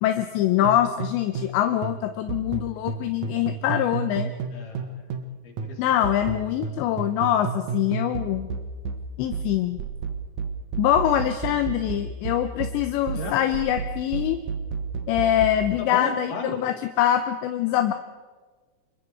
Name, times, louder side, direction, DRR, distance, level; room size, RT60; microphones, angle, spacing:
voice 1, 0.0-4.3 5.8-8.5 9.2-9.8 10.8-14.4 15.1-17.9, left 11 dB, 75° left, 8 dB, 2.9 m, -24 dB
sound 1, 0.6-5.3 5.6-15.7, right 5 dB, 70° right, 1.7 m, -32 dB
voice 2, 4.5-5.1 5.4-6.1 6.6-6.9 13.1-13.4 15.8-16.6, left 3 dB, 45° left, 1 dB, 4.7 m, -35 dB
27.0 x 22.5 x 4.7 m, 1.4 s
omnidirectional pair, 5.6 m